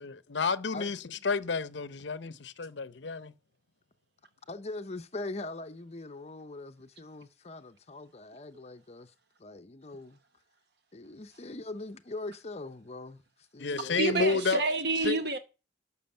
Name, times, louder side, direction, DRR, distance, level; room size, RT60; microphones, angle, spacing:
voice 1, 0.0-3.3 13.6-14.6 15.0-15.2, left 4 dB, 70° left, 0.7 m, -30 dB
voice 2, 4.5-9.1 9.4-10.2 10.9-14.3, left 2 dB, 35° left, 0.7 m, -42 dB
voice 3, 13.9-15.4, right 3 dB, 60° right, 1.0 m, -28 dB
12.5 x 6.2 x 7.5 m
head